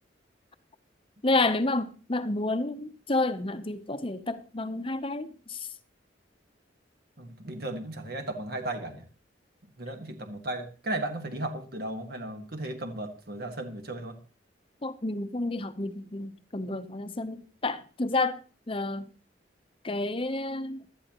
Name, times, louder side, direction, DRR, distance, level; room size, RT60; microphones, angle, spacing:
voice 1, 1.2-5.7 14.8-19.1 19.8-20.8, left 2 dB, 30° left, 0.8 m, -30 dB
voice 2, 7.2-9.0 9.8-14.2, right 1 dB, 55° right, 1.5 m, -35 dB
17.0 x 12.0 x 3.0 m
head